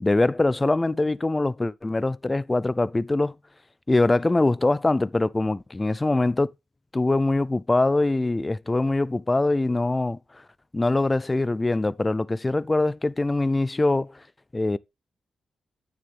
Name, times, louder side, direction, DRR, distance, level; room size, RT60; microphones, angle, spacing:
voice 1, 0.0-3.4 3.9-6.5 6.9-10.2 10.7-14.1 14.5-14.8, left 2 dB, 25° left, 0.5 m, -23 dB
9.4 x 7.1 x 3.4 m
cardioid pair, 70°, 0 cm